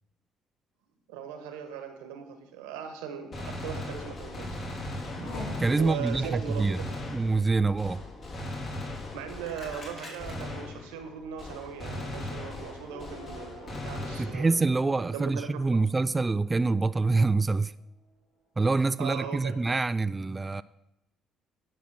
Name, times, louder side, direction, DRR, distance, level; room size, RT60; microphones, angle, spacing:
voice 1, 1.1-4.6 5.8-7.0 9.1-14.5 15.1-15.8 19.0-19.5, right 8 dB, 90° right, 1.3 m, -39 dB
Gunshot gunfire, 3.3-11.1 11.4-14.7, left 1 dB, 50° left, 3.3 m, -39 dB
Race car auto racing / Accelerating revving vroom, 4.0-17.0 17.4-18.1, left 1 dB, 85° left, 4.4 m, -48 dB
voice 2, 5.6-6.8 7.1-8.0 14.2-17.7 18.6-20.6, right 3 dB, 25° right, 0.3 m, -26 dB
10.0 x 6.1 x 6.0 m
supercardioid pair, 60°, 0 cm